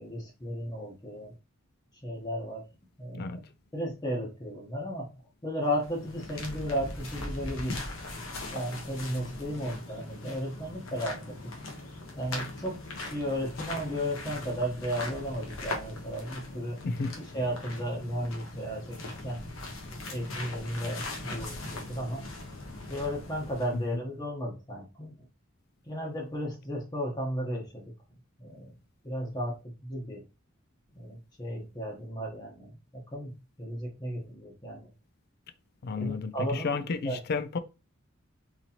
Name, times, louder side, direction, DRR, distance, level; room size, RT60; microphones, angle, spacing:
voice 1, 0.0-1.3 2.0-2.6 3.0-3.4 3.7-5.1 5.4-7.8 8.5-11.4 12.2-16.8 17.3-19.0 19.2-19.4 20.1-22.3 22.9-25.2 25.9-27.9 28.4-28.7 29.0-30.2 30.9-34.9 36.0-37.4, equal, 20° left, 0.9 m, -34 dB
sound 1, 5.6-23.9, left 2 dB, 90° left, 1.0 m, -40 dB
voice 2, 16.8-17.1 23.7-23.8 35.8-37.6, left 4 dB, 50° left, 0.4 m, -32 dB
4.0 x 3.0 x 2.8 m
head